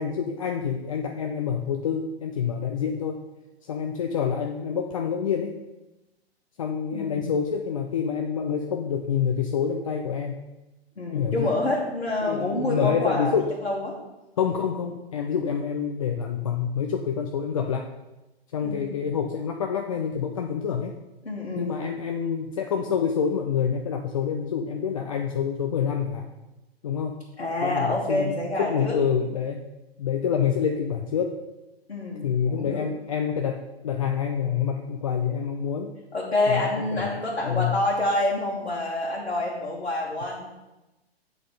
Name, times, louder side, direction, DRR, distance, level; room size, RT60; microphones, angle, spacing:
voice 1, 0.0-3.2 3.6-5.6 6.6-10.4 11.1-11.5 12.2-13.5 14.4-17.9 18.5-21.0 21.6-26.3 26.8-27.2 27.6-29.6 30.0-31.4 32.2-36.0 36.5-37.1 37.4-37.7, left 7 dB, 35° left, 3 dB, 0.4 m, -27 dB
voice 2, 6.9-7.4 11.0-13.3 13.6-14.0 18.6-19.1 21.2-21.9 27.4-28.9 31.9-32.9 36.1-40.5, left 2 dB, 80° left, -5 dB, 1.6 m, -27 dB
7.8 x 4.0 x 5.0 m, 1.0 s
figure-of-eight pair, 125°, 32 cm